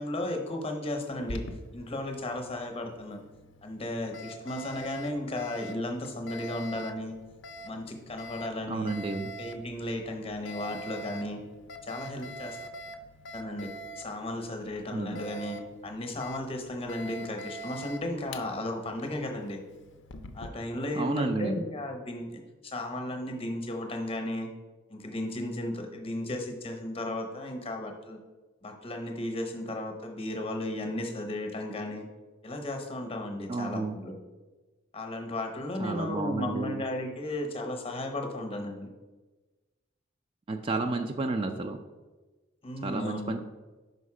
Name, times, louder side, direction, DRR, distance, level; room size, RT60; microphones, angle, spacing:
voice 1, 0.0-1.4 1.7-3.2 3.6-7.1 7.6-8.9 9.4-11.4 11.8-12.7 13.3-13.7 14.0-19.6 20.3-24.5 24.9-28.2 28.6-32.1 32.4-34.1 34.9-38.9 42.6-43.4, left 1 dB, 30° left, 4 dB, 0.8 m, -35 dB
Alarm, 1.1-20.5, equal, 60° left, 0.5 m, -45 dB
voice 2, 8.7-9.3 14.9-15.2 20.9-21.6 33.5-34.0 35.8-36.8 40.5-41.8 42.8-43.4, right 3 dB, 25° right, 5 dB, 0.3 m, -31 dB
5.4 x 5.0 x 4.8 m, 1.2 s
head